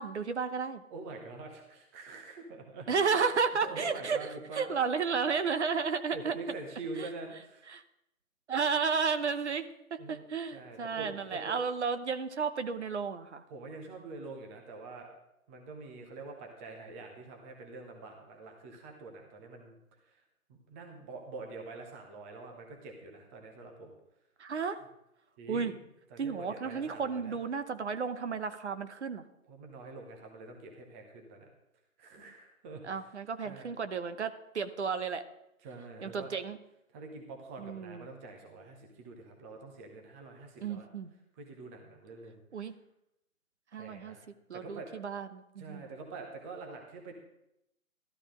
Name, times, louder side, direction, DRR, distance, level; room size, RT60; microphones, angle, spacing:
voice 1, 0.0-0.8 2.9-6.4 7.0-7.1 7.7-7.8 8.5-13.4 24.4-24.8 25.5-25.7 26.2-29.2 32.8-35.2 36.0-36.6 37.6-38.1 40.6-41.1 42.5-42.7 43.7-44.2 44.5-45.9, right 5 dB, 55° right, 10 dB, 0.9 m, -33 dB
voice 2, 0.9-2.9 3.6-4.8 6.1-7.7 10.0-10.3 10.5-11.5 13.5-15.1 15.5-19.7 20.0-20.2 20.7-24.0 24.5-24.7 25.4-25.8 26.1-27.4 29.5-31.5 32.0-32.8 33.4-33.7 35.6-36.3 36.9-40.9 41.4-42.4 43.7-44.2 44.5-44.9 45.6-47.1, right 3 dB, 10° right, 2 dB, 0.7 m, -45 dB
13.5 x 12.5 x 3.8 m, 0.84 s
figure-of-eight pair, 140°, 42 cm